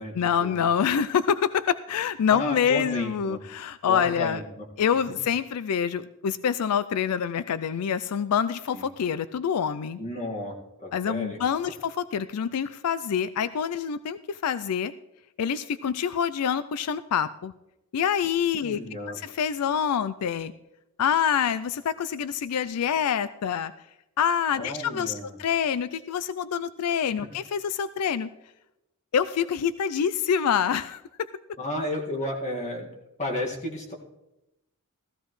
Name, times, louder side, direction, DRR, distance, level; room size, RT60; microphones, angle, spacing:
voice 1, 0.1-4.4 4.8-10.0 10.9-14.9 15.4-17.5 17.9-18.8 19.1-20.5 21.0-23.7 24.2-28.3 29.1-31.0, left 7 dB, 90° left, 15 dB, 0.4 m, -26 dB
voice 2, 2.3-3.4 3.9-4.4 8.7-8.9 10.0-11.4 18.6-19.2 24.6-25.3 31.6-32.9 33.2-33.9, left 1 dB, 30° left, 0 dB, 1.9 m, -32 dB
16.0 x 14.5 x 3.1 m, 0.91 s
head